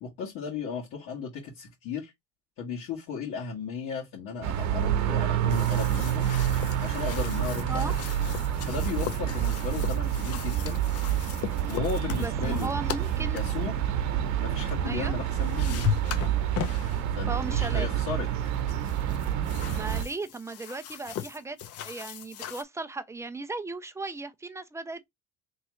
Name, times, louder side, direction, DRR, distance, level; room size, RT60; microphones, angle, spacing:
voice 1, 0.0-2.1 2.6-6.3 6.8-7.9 8.6-10.8 11.7-12.7 13.3-13.8 14.4-15.9 17.1-18.3, left 6 dB, 70° left, 1.4 m, -35 dB
sound 1, 4.4-20.1, right 10 dB, 60° right, 0.8 m, -28 dB
sound 2, 5.5-13.6 14.9-15.1 15.3-17.0 17.6-17.9 18.7-22.6, left 10 dB, 50° left, 0.6 m, -37 dB
voice 2, 12.2-13.4 14.8-15.1 17.3-17.9 19.7-21.6 21.8-25.1, right 3 dB, 10° right, 0.3 m, -36 dB
3.5 x 3.1 x 3.1 m
cardioid pair, 130°, 32 cm